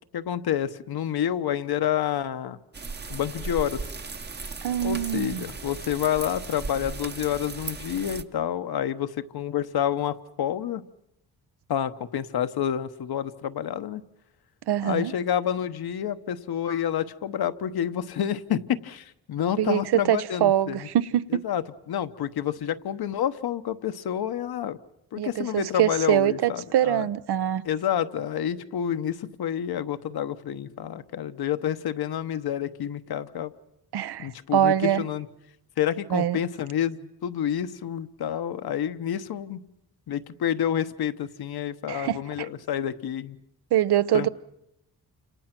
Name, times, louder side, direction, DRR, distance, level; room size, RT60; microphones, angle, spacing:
voice 1, 0.1-2.6 3.1-3.8 4.8-10.8 11.7-14.0 14.8-20.9 21.3-24.8 25.1-27.1 27.6-33.5 34.2-35.3 35.8-39.6 40.1-43.4 44.1-44.3, left 10 dB, 75° left, 1.1 m, -29 dB
sound 1, 2.7-8.2, right 4 dB, 25° right, 0.9 m, -37 dB
voice 2, 4.6-5.4 14.7-15.1 19.6-21.5 25.2-27.6 33.9-35.0 36.1-36.4 41.9-42.5 43.7-44.3, right 11 dB, 85° right, 0.9 m, -24 dB
29.0 x 27.0 x 6.0 m
wide cardioid pair, 160°, 38 cm